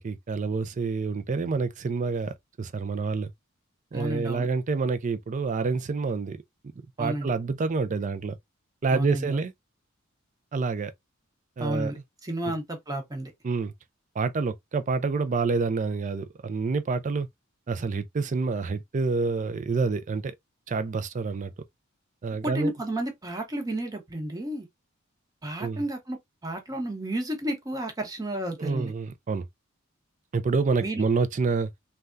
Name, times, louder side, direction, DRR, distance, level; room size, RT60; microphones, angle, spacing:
voice 1, 0.0-3.3 3.9-6.4 7.0-8.4 8.8-9.5 10.5-10.9 11.6-11.9 12.4-12.5 13.4-13.7 14.2-17.3 17.7-20.4 20.7-21.5 22.2-22.7 25.6-25.8 28.6-29.5 30.3-31.7, right 4 dB, 40° right, 0.4 m, -28 dB
voice 2, 3.9-4.5 7.0-7.3 8.9-9.4 11.6-13.3 22.4-24.7 25.4-28.9 30.8-31.1, right 1 dB, 20° right, 0.8 m, -32 dB
3.3 x 2.3 x 2.4 m
head